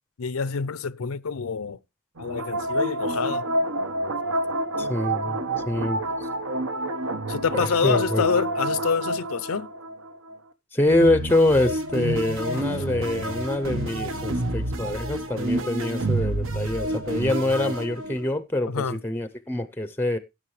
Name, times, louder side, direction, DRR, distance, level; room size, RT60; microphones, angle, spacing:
voice 1, 0.2-1.8 2.2-3.5 7.3-9.7 12.5-12.7 18.7-19.0, left 5 dB, 70° left, 0.6 m, -27 dB
sound 1, 2.2-10.4 10.9-18.3, right 1 dB, 65° right, 1.3 m, -28 dB
voice 2, 4.8-5.4 5.7-6.3 7.5-8.3 10.7-20.2, left 1 dB, 10° left, 0.6 m, -25 dB
16.5 x 6.4 x 3.2 m
head